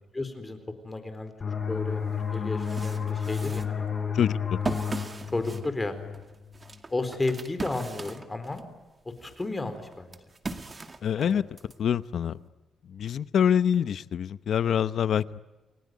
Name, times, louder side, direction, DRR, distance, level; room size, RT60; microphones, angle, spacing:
voice 1, 0.1-0.6 0.8-2.0 2.3-4.1 5.3-5.9 6.9-8.6 9.2-10.2 11.2-11.4, left 2 dB, 20° left, 9 dB, 4.3 m, -33 dB
sound 1, 1.4-6.8, left 7 dB, 35° left, 7.1 m, -32 dB
sound 2, 1.8-1.9 2.3-8.7 9.1-11.8, right 3 dB, 25° right, 2.1 m, -39 dB
voice 2, 4.1-4.6 11.0-11.4 11.8-12.4 12.9-15.4, left 8 dB, 60° left, 15 dB, 0.9 m, -25 dB
29.5 x 21.0 x 9.5 m, 1.2 s
cardioid pair, 120°, 0 cm